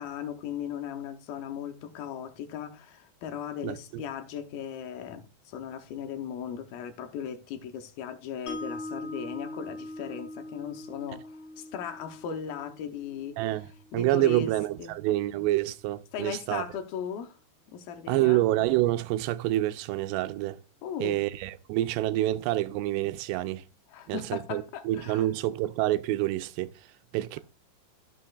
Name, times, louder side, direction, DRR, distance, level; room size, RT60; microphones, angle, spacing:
voice 1, 0.0-13.4 13.9-14.5 14.8-15.0 16.1-17.4 17.7-18.5 20.8-21.2 23.9-25.3, left 8 dB, 80° left, 2.4 m, -37 dB
voice 2, 3.6-4.0 13.4-13.7 13.9-16.6 18.1-20.6 21.0-23.6 24.1-26.7 27.1-27.4, right 15 dB, 85° right, 2.7 m, -27 dB
Mallet percussion, 8.5-14.6, left 2 dB, 40° left, 0.8 m, -42 dB
13.5 x 6.3 x 2.4 m
omnidirectional pair, 4.9 m